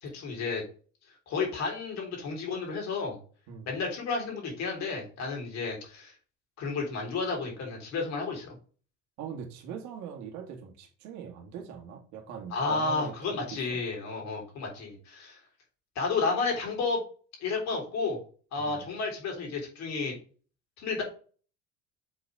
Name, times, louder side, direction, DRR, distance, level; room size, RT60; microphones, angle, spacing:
voice 1, 0.0-0.6 1.3-3.2 3.6-6.1 6.6-8.6 12.5-15.4 16.0-17.0 17.4-18.2 18.5-20.2 20.8-21.0, left 4 dB, 60° left, 3.7 m, -32 dB
voice 2, 9.2-13.6 14.2-14.5 18.6-18.8, right 7 dB, 65° right, 1.9 m, -42 dB
7.7 x 4.0 x 3.5 m
supercardioid pair, 100°, 31 cm